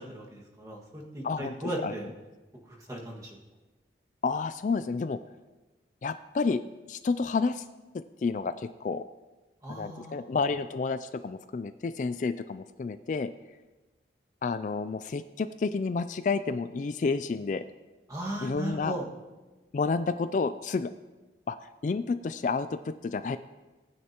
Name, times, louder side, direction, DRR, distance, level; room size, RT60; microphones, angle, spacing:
voice 1, 0.0-2.1 2.7-3.3 9.6-10.3 18.1-19.1, right 1 dB, 20° right, -3 dB, 1.8 m, -37 dB
voice 2, 1.2-1.9 4.2-5.2 6.0-6.6 6.9-7.6 7.9-9.0 9.7-13.3 14.4-17.6 18.4-19.0 19.7-20.9 21.5-21.6 21.8-23.4, left 4 dB, 45° left, 12 dB, 0.3 m, -30 dB
19.0 x 9.5 x 3.0 m, 1.2 s
head